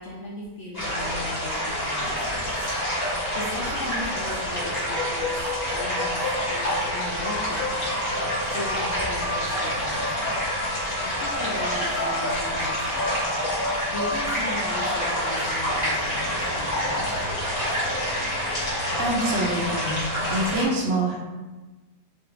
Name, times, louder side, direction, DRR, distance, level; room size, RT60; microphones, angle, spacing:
voice 1, 0.0-2.7 3.3-5.4 5.7-10.4 11.0-13.1 13.9-17.1, left 1 dB, 70° left, -6 dB, 0.6 m, -37 dB
sound 1, 0.7-20.6, equal, 30° left, 1.1 m, -27 dB
sound 2, 4.8-15.5, left 2 dB, 90° left, 1.3 m, -34 dB
voice 2, 18.9-20.0 20.3-21.2, right 1 dB, 65° right, -2 dB, 0.7 m, -25 dB
3.2 x 2.4 x 3.1 m, 1.2 s
omnidirectional pair, 1.7 m